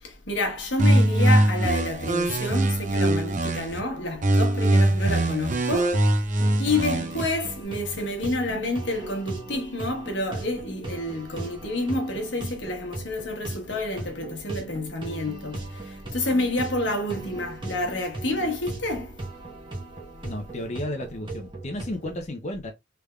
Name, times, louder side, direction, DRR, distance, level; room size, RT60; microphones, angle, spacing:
voice 1, 0.0-6.0 6.6-19.2, left 2 dB, 80° left, 1.1 m, -29 dB
sound 1, 0.8-3.8 4.2-7.2, right 1 dB, 45° right, 0.6 m, -22 dB
sound 2, 6.4-22.2, right 2 dB, 25° right, 1.0 m, -38 dB
voice 2, 20.2-22.7, left 1 dB, 40° left, 0.6 m, -33 dB
3.4 x 3.3 x 2.3 m
head